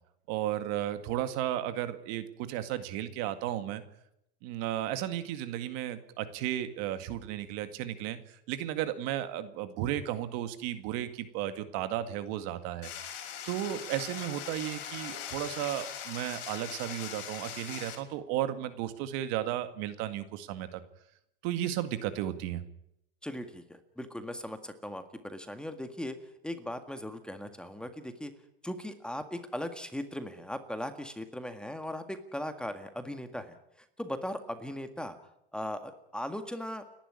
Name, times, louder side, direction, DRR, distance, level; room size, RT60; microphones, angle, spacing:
voice 1, 0.3-3.8 4.4-13.2 13.5-20.8 21.4-22.6, right 12 dB, 55° right, 11 dB, 2.1 m, -34 dB
sound 1, 12.8-18.0, left 9 dB, 65° left, 5.3 m, -41 dB
voice 2, 23.2-26.2 26.4-28.3 28.6-35.2 35.5-36.9, left 1 dB, 5° left, 8 dB, 1.8 m, -38 dB
29.5 x 11.5 x 9.8 m, 0.80 s
supercardioid pair, 125°, 29 cm